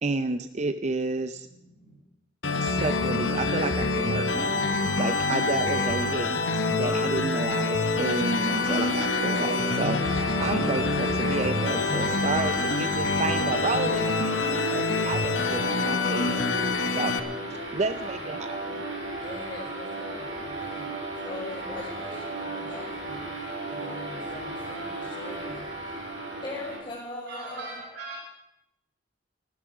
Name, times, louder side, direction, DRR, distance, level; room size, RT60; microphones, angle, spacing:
voice 1, 0.0-1.5 2.6-4.7 5.0-6.4 6.7-16.4 16.9-17.2 17.7-18.8, right 3 dB, 35° right, 10 dB, 0.5 m, -31 dB
voice 2, 1.5-2.0 27.3-28.2, right 2 dB, 60° right, -1 dB, 6.4 m, -40 dB
sound 1, 2.4-17.2, left 3 dB, 70° left, 1.2 m, -26 dB
sound 2, 8.4-26.8, right 2 dB, 85° right, 4.8 m, -35 dB
voice 3, 17.9-18.2 19.2-20.9 21.2-25.9 26.4-27.8, left 2 dB, 25° left, -5 dB, 3.9 m, -41 dB
15.0 x 12.5 x 6.1 m, 0.88 s
head